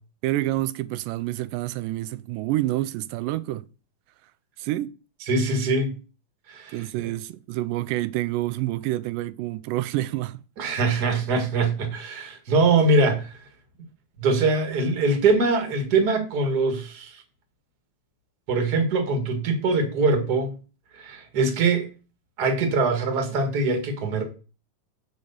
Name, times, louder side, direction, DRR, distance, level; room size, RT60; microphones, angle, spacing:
voice 1, 0.2-3.6 4.6-4.9 6.7-10.4, right 16 dB, 90° right, 2.2 m, -28 dB
voice 2, 5.2-5.9 6.5-7.1 10.6-13.4 14.2-17.2 18.5-20.5 20.9-21.9 22.4-24.2, right 3 dB, 35° right, 2.0 m, -23 dB
6.2 x 5.3 x 7.0 m
omnidirectional pair, 3.7 m